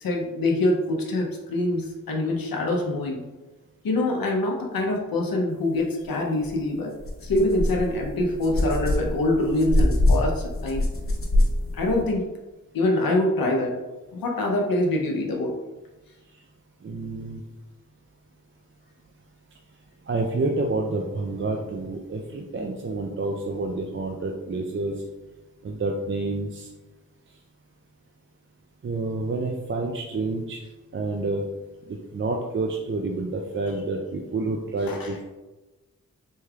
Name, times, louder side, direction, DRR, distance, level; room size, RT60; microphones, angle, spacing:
voice 1, 0.0-3.3 3.8-6.9 7.2-10.8 11.7-12.3 12.7-13.8 14.1-15.6 34.9-35.1, left 1 dB, 85° left, 0 dB, 0.7 m, -25 dB
sound 1, 6.4-6.5 7.0-12.0, left 1 dB, 40° left, 0.8 m, -24 dB
voice 2, 16.8-17.4 20.1-25.0 25.6-26.7 28.8-30.6 30.9-31.5 31.9-35.2, right 2 dB, 35° right, 2 dB, 0.4 m, -28 dB
4.4 x 3.2 x 2.3 m, 1.1 s
cardioid pair, 50°, 34 cm